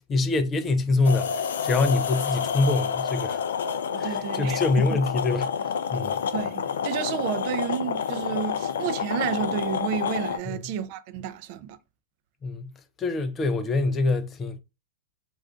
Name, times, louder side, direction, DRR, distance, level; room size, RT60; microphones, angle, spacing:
voice 1, 0.0-3.4 4.0-5.5 5.9-6.2 10.5-10.6 12.4-12.7 13.0-14.6, left 3 dB, 20° left, 0.4 m, -25 dB
sound 1, 1.0-10.4, left 7 dB, 85° left, 0.4 m, -29 dB
voice 2, 3.9-5.0 6.3-11.8, right 9 dB, 45° right, 0.4 m, -31 dB
2.4 x 2.3 x 3.6 m
supercardioid pair, 150°, 0 cm